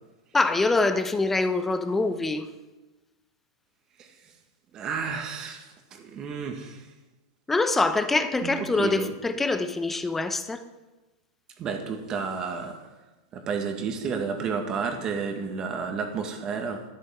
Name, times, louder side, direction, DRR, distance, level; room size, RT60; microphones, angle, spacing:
voice 1, 0.3-2.5 7.5-10.6, left 3 dB, 10° left, 0.9 m, -24 dB
voice 2, 4.0-4.3 4.7-6.9 8.4-9.2 11.6-12.9 13.3-16.9, right 5 dB, 35° right, 1.9 m, -32 dB
12.5 x 10.0 x 3.7 m
hypercardioid pair, 105°, 2 cm